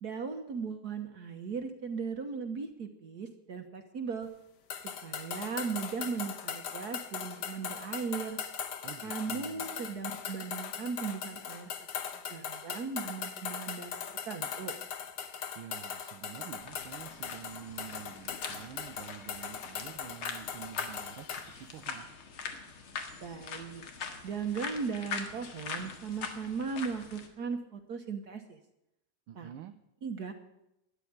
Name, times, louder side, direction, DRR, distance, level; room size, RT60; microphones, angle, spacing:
voice 1, 0.0-4.3 5.0-8.4 9.0-11.7 12.1-14.0 14.3-14.7 23.2-23.8 24.2-28.6 29.4-29.5 30.0-30.3, right 5 dB, 55° right, 6 dB, 1.5 m, -37 dB
sound 1, 4.7-21.5, left 7 dB, 60° left, 1.5 m, -40 dB
voice 2, 8.8-9.7 15.5-22.1 29.3-29.8, right 10 dB, 85° right, 7 dB, 1.6 m, -48 dB
sound 2, 16.6-27.3, left 5 dB, 85° left, 2.5 m, -42 dB
13.0 x 9.9 x 9.7 m, 0.86 s
omnidirectional pair, 2.3 m